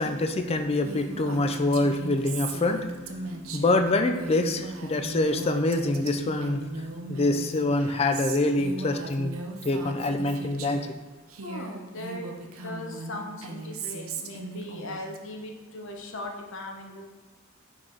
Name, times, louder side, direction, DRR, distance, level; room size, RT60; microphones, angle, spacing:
voice 1, 0.0-6.7 7.1-9.3 9.6-10.9, left 2 dB, 30° left, 7 dB, 0.4 m, -25 dB
Female speech woman speaking, 0.8-10.9 11.3-15.2, right 3 dB, 90° right, 0.7 m, -38 dB
voice 2, 11.4-12.3 12.6-17.0, left 1 dB, 65° left, 2 dB, 0.9 m, -39 dB
5.8 x 4.7 x 3.8 m, 1.2 s
head